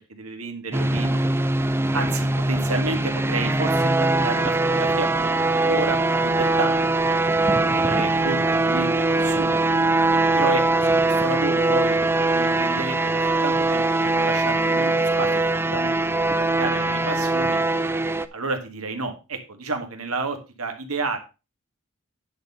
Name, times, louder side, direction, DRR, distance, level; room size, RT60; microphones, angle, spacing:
voice 1, 0.1-1.2 1.9-6.7 7.1-7.2 7.5-9.6 10.3-15.3 15.7-17.6 18.3-21.2, right 3 dB, 90° right, 5 dB, 1.9 m, -31 dB
sound 1, 0.7-18.3, right 2 dB, 10° right, 0.4 m, -21 dB
10.0 x 4.3 x 5.4 m, 0.30 s
head